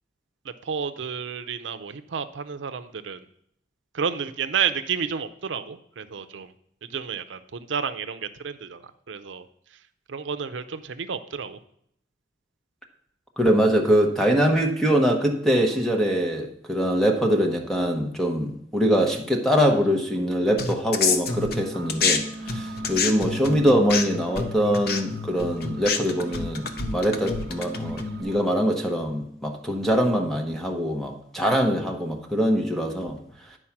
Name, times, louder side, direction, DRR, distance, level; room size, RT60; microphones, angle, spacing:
voice 1, 0.6-3.2 3.9-6.5 6.9-9.5 10.1-11.6, right 6 dB, 85° right, 10 dB, 0.5 m, -31 dB
voice 2, 13.4-33.2, equal, ahead, 2 dB, 0.9 m, -23 dB
sound 1, 20.6-22.2 22.5-28.2, left 5 dB, 55° left, 0.8 m, -27 dB
sound 2, 21.3-28.4, right 1 dB, 65° right, 1.0 m, -39 dB
9.9 x 4.7 x 5.8 m, 0.70 s
head